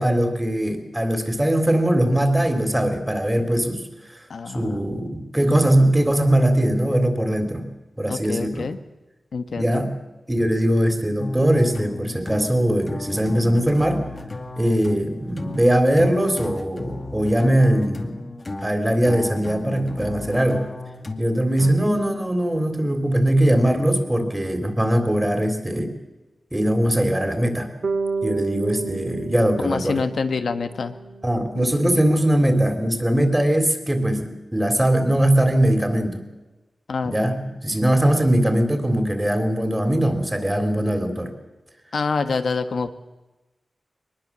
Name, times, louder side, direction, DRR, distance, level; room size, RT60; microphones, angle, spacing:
voice 1, 0.0-3.8 4.5-7.7 8.0-8.7 9.5-9.9 10.3-14.1 14.6-18.3 18.6-20.6 21.2-25.9 26.5-27.7 28.2-30.0 31.2-36.2 37.1-41.3, right 1 dB, 10° right, 7 dB, 3.5 m, -21 dB
voice 2, 4.3-4.9 8.1-8.8 9.3-9.8 29.6-31.0 31.5-32.0 36.9-37.3 41.9-42.9, left 4 dB, 75° left, 8 dB, 1.4 m, -27 dB
sound 1, 11.2-22.1, left 2 dB, 35° left, 2.2 m, -34 dB
Bass guitar, 27.8-31.9, right 4 dB, 60° right, 2.1 m, -31 dB
22.0 x 20.5 x 7.5 m, 1.1 s
wide cardioid pair, 100°, 0 cm